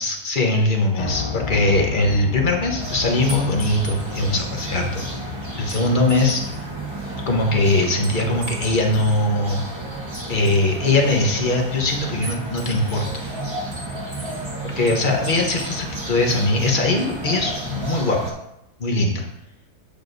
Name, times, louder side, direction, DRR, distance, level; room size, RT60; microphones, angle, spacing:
voice 1, 0.0-5.1 5.6-6.4 7.3-9.6 10.3-13.1 14.8-18.4 18.8-19.2, left 2 dB, 35° left, 1 dB, 1.0 m, -21 dB
Piano, 1.0-9.0, left 6 dB, 85° left, 1.2 m, -34 dB
sound 1, 2.8-18.3, right 1 dB, 20° right, 1.1 m, -32 dB
sound 2, 3.3-4.1 5.7-6.6 8.0-9.2 10.1-11.1 12.2-13.3 13.7-14.5 14.9-15.8, right 2 dB, 75° right, 2.5 m, -38 dB
8.0 x 6.8 x 2.6 m, 0.81 s
omnidirectional pair, 1.7 m